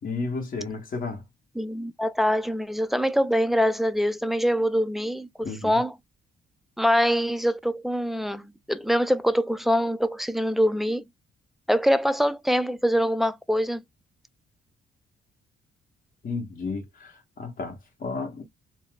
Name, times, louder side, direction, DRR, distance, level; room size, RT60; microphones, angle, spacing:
voice 1, 0.0-1.2 5.4-5.8 16.2-18.4, left 4 dB, 45° left, 1.3 m, -33 dB
voice 2, 1.6-5.9 6.8-11.0 11.7-13.8, equal, ahead, 0.3 m, -24 dB
4.1 x 2.1 x 2.3 m
cardioid pair, 90°, 20 cm